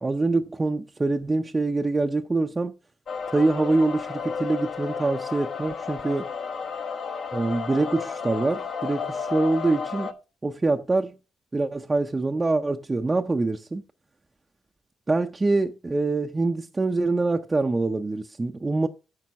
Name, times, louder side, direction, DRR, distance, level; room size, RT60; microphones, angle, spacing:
voice 1, 0.0-2.7 3.3-6.3 7.3-10.1 10.4-11.2 11.5-13.8 15.1-18.9, right 3 dB, 20° right, 0.6 m, -25 dB
sound 1, 3.1-10.1, left 6 dB, 55° left, 1.1 m, -32 dB
9.4 x 5.0 x 5.8 m
cardioid pair, 90°, 0 cm